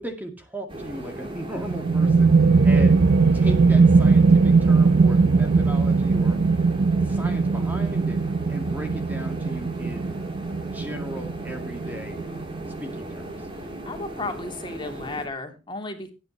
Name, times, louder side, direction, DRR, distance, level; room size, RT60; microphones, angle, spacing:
voice 1, 0.0-3.0 3.3-6.4 7.0-8.2 8.5-10.2 10.7-12.2 12.8-13.5, right 1 dB, 10° right, 4 dB, 2.1 m, -37 dB
sound 1, 0.7-15.3, right 1 dB, 30° right, 3.5 m, -37 dB
sound 2, 1.6-12.9, right 4 dB, 75° right, 0.6 m, -20 dB
voice 2, 13.8-16.1, left 2 dB, 25° left, 5 dB, 2.9 m, -34 dB
18.0 x 9.4 x 3.2 m, 0.29 s
head